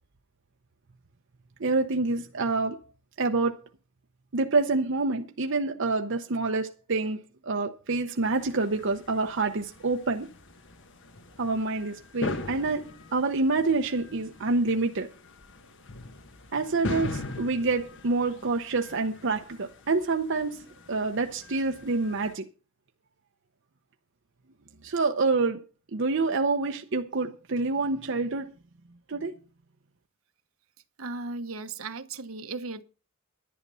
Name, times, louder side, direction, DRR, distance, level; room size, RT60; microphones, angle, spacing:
voice 1, 1.6-2.8 3.2-3.6 4.3-10.3 11.4-15.1 16.5-22.5 24.8-25.6 25.9-28.5 29.1-29.4, right 3 dB, 60° right, 0.8 m, -27 dB
sound 1, 8.2-22.3, left 2 dB, 60° left, 1.3 m, -41 dB
voice 2, 31.0-32.8, right 3 dB, 75° right, 1.2 m, -36 dB
11.0 x 10.5 x 5.5 m
head